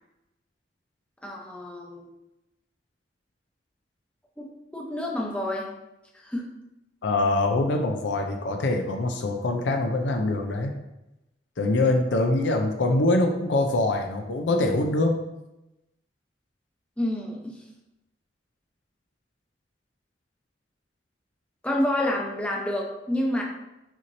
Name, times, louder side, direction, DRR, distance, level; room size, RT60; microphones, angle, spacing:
voice 1, 1.2-2.0 4.4-5.7 6.2-6.5 17.0-17.5 21.6-23.4, left 1 dB, 5° left, -2 dB, 0.7 m, -28 dB
voice 2, 7.0-10.7 11.6-15.2, left 2 dB, 80° left, 4 dB, 0.5 m, -24 dB
5.9 x 2.9 x 2.7 m, 0.94 s
head